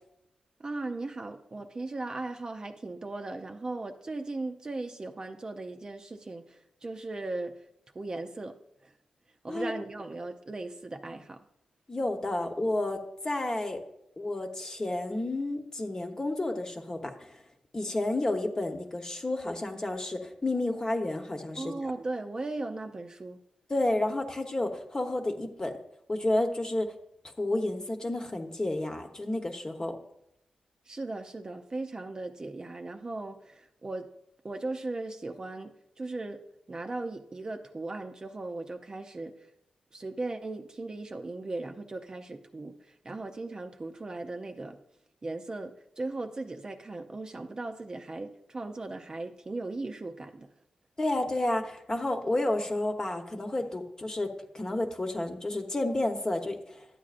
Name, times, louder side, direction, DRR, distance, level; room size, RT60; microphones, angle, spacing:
voice 1, 0.6-7.7 7.9-8.9 9.4-11.4 21.6-23.4 30.9-34.1 34.4-39.5 39.9-44.8 45.2-50.5, right 2 dB, 35° right, 5 dB, 0.6 m, -38 dB
voice 2, 11.9-13.8 14.2-17.4 17.7-21.7 23.7-25.8 26.1-26.9 27.4-30.0 51.0-56.9, left 2 dB, 30° left, 4 dB, 1.1 m, -31 dB
11.5 x 8.2 x 2.5 m, 0.79 s
cardioid pair, 65°, 2 cm